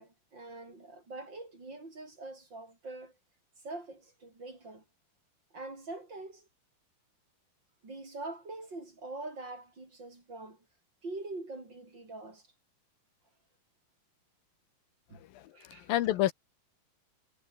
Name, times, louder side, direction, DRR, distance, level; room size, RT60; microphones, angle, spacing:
voice 1, 0.0-3.1 3.6-4.8 5.5-6.5 7.8-10.6 11.0-12.5 15.1-15.2 15.5-15.9, right 2 dB, 30° right, 5.8 m, -44 dB
voice 2, 15.1-16.3, left 13 dB, 80° left, 2.8 m, -30 dB
omnidirectional pair, 4.1 m